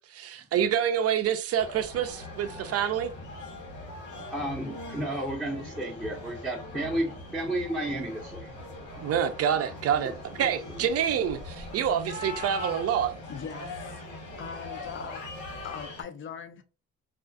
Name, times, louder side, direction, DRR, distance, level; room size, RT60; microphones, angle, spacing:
voice 1, 0.1-3.1 9.0-13.2, right 9 dB, 55° right, 0.5 m, -27 dB
sound 1, 1.6-16.0, left 2 dB, 90° left, 1.1 m, -41 dB
voice 2, 4.1-8.6 10.4-10.5, right 1 dB, ahead, 0.6 m, -32 dB
voice 3, 13.3-14.0 14.4-15.3 15.6-16.6, left 7 dB, 40° left, 0.5 m, -40 dB
2.4 x 2.3 x 2.5 m
cardioid pair, 90°, 30 cm